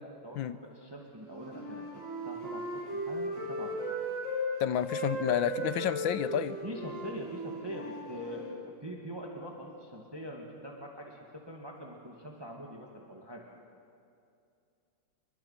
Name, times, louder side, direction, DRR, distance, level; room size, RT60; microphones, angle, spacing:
voice 1, 0.2-3.9 6.6-11.2 11.5-13.5, equal, 10° right, -1 dB, 2.1 m, -43 dB
Wind instrument woodwind instrument, 1.2-4.5 4.8-8.6, equal, 75° right, 6.8 m, -37 dB
voice 2, 4.6-6.6, left 10 dB, 75° left, 13 dB, 1.4 m, -30 dB
28.5 x 23.0 x 5.8 m, 2.5 s
omnidirectional pair, 2.2 m